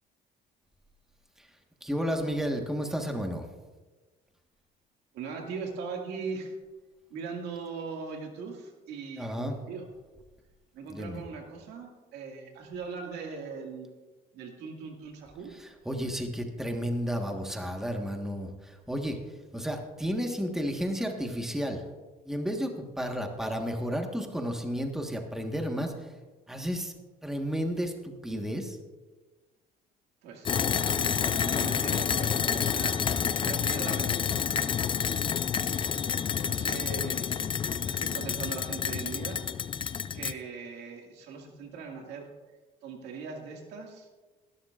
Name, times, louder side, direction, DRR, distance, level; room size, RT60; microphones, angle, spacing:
voice 1, 1.8-3.4 9.2-9.6 10.9-11.2 15.6-19.2 19.5-21.8 22.2-25.9 26.5-26.9 27.2-28.8 34.9-35.0, equal, 5° right, 3 dB, 1.4 m, -32 dB
voice 2, 5.1-6.6 7.1-9.9 10.7-13.9 14.3-15.5 30.2-33.1 33.4-34.4 36.4-37.3 37.8-39.4 40.1-42.3 42.8-44.1, right 5 dB, 85° right, 1 dB, 2.1 m, -40 dB
sound 1, 30.5-40.3, left 7 dB, 30° left, 0.4 m, -29 dB
18.5 x 12.0 x 2.5 m, 1.3 s
cardioid pair, 110°, 17 cm